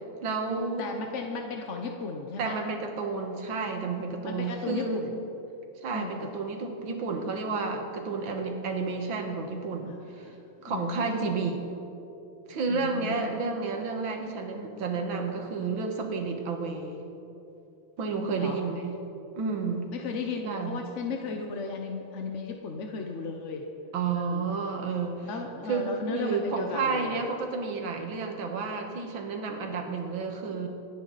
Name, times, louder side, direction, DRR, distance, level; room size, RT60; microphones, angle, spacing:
voice 1, 0.2-0.9 2.4-5.0 5.8-10.3 10.6-11.6 12.5-17.0 18.0-19.0 19.3-19.9 20.4-20.8 23.9-25.3 25.7-30.7, right 4 dB, 65° right, 3 dB, 2.2 m, -31 dB
voice 2, 0.8-2.6 4.2-5.2 5.9-6.3 9.9-10.0 10.3-11.3 12.7-13.4 18.4-18.6 19.9-23.6 24.1-24.5 25.2-27.2, left 4 dB, 50° left, 3 dB, 0.9 m, -35 dB
26.5 x 9.4 x 4.1 m, 2.9 s
omnidirectional pair, 2.3 m